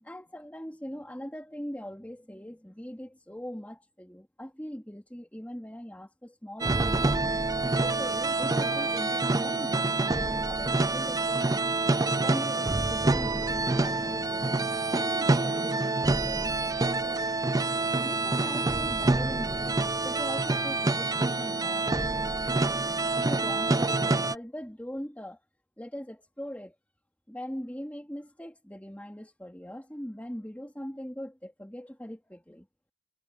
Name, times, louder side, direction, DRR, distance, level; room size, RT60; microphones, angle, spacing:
voice 1, 0.0-7.0 7.7-11.7 12.2-17.2 18.0-22.4 23.1-25.4 25.8-26.8 27.3-32.7, equal, 5° left, 2.0 m, -41 dB
sound 1, 6.6-24.4, right 3 dB, 15° right, 0.4 m, -27 dB
head